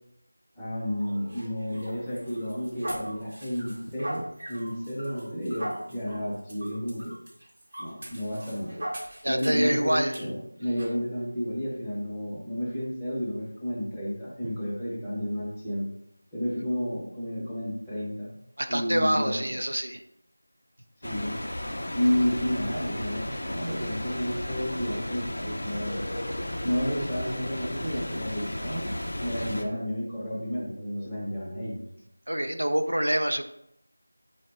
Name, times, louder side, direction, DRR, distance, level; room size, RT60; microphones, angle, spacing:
voice 1, 0.6-7.2 7.8-8.8 9.3-15.9 16.3-18.3 18.7-19.6 21.0-21.4 21.9-26.0 26.6-28.9 29.2-31.8, equal, 5° left, -10 dB, 0.6 m, -31 dB
sound 1, 1.0-9.7 10.1-10.2 10.8-11.0, equal, 45° right, 0.9 m, -40 dB
voice 2, 9.2-10.4 14.4-14.5 18.6-20.0 32.3-33.4, right 1 dB, 90° right, 6 dB, 0.3 m, -26 dB
sound 2, 21.0-29.6, left 1 dB, 55° left, 0.4 m, -34 dB
3.6 x 2.0 x 3.2 m, 0.77 s
figure-of-eight pair, 175°, 0 cm